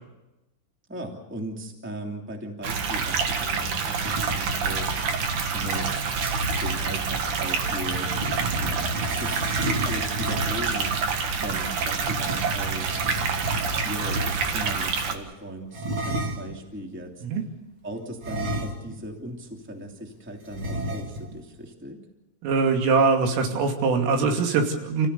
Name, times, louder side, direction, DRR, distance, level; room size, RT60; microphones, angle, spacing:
voice 1, 0.9-5.1 5.5-6.1 6.6-8.1 8.4-8.9 9.2-9.6 9.9-12.9 13.8-17.2 17.8-22.0, right 1 dB, 5° right, 2 dB, 0.8 m, -38 dB
sound 1, 2.6-15.1, right 5 dB, 60° right, 2.2 m, -27 dB
sound 2, 3.9-6.8 7.7-10.8 12.0-14.6 15.7-16.6 18.2-19.1 19.4-19.5 20.5-21.4, right 1 dB, 35° right, 2.1 m, -32 dB
voice 2, 22.4-25.1, right 4 dB, 75° right, 3 dB, 5.1 m, -22 dB
29.5 x 16.5 x 6.9 m, 0.96 s
omnidirectional pair, 5.9 m